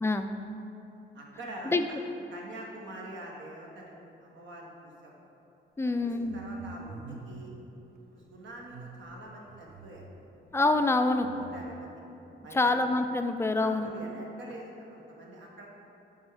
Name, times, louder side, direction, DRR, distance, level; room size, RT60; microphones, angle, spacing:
voice 1, 1.1-2.0 2.3-3.9 4.2-5.2 6.0-7.5 8.1-10.0 11.3-12.0 12.4-12.8 13.5-15.7, right 1 dB, 70° right, -2 dB, 1.4 m, -45 dB
voice 2, 5.8-6.4 10.5-11.3 12.5-13.9, left 2 dB, 15° left, 7 dB, 0.4 m, -26 dB
sound 1, 5.9-7.7 8.6-10.3 11.2-11.6, right 4 dB, 50° right, 0.6 m, -47 dB
8.4 x 3.6 x 4.9 m, 2.9 s
cardioid pair, 90°, 20 cm